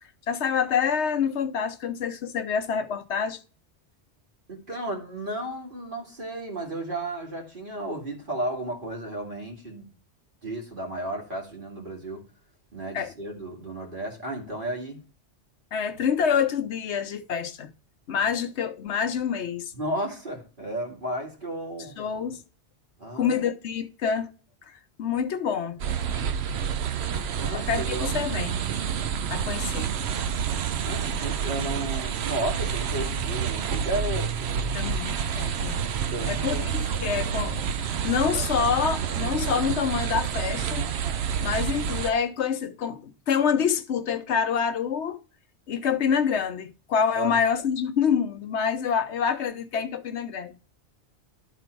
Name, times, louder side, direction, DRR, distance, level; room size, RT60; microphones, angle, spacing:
voice 1, 0.3-3.4 12.9-13.1 15.7-17.7 18.1-19.7 22.0-22.4 23.1-24.3 24.7-25.8 27.5-28.6 29.3-29.9 34.7-35.8 36.2-40.9 41.4-45.2 45.7-50.5, left 7 dB, 80° left, 1.1 m, -27 dB
voice 2, 4.5-9.9 10.4-12.2 12.7-15.0 19.7-22.0 23.0-23.4 27.4-28.1 30.8-34.7 36.1-36.7 47.2-47.4, right 1 dB, 50° right, 2.5 m, -33 dB
sound 1, 25.8-42.1, right 7 dB, 70° right, 0.9 m, -28 dB
12.0 x 4.0 x 4.5 m
omnidirectional pair, 1.1 m